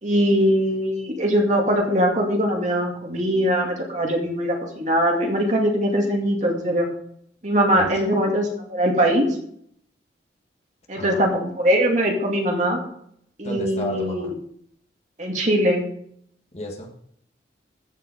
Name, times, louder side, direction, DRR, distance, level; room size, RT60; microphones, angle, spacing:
voice 1, 0.0-6.9 7.4-9.3 10.9-12.8 13.4-14.3 15.2-15.9, equal, 40° right, 0 dB, 2.4 m, -21 dB
voice 2, 11.0-11.3 13.4-14.3 16.5-17.0, equal, 35° left, 2 dB, 1.7 m, -32 dB
15.0 x 5.5 x 5.3 m, 0.68 s
head